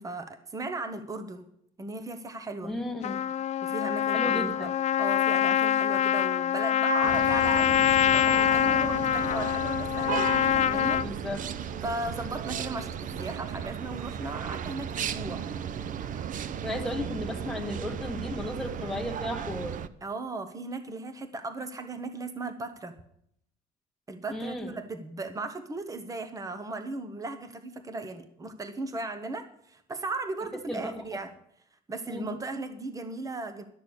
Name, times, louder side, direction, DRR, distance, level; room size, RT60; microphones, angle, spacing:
voice 1, 0.0-1.5 1.8-2.8 3.6-4.7 5.0-11.0 11.8-15.5 20.0-22.9 24.1-31.3 31.9-33.6, right 3 dB, 20° right, 9 dB, 1.2 m, -36 dB
voice 2, 2.6-3.3 4.1-4.7 11.0-11.4 16.6-19.8 24.3-24.7 30.7-31.2 32.1-32.2, left 1 dB, ahead, 0 dB, 1.6 m, -34 dB
Trumpet, 3.0-11.1, left 10 dB, 45° left, 0.4 m, -25 dB
sound 1, 7.0-19.9, right 8 dB, 50° right, 0.6 m, -35 dB
12.5 x 6.7 x 8.1 m, 0.71 s
cardioid pair, 110°, 17 cm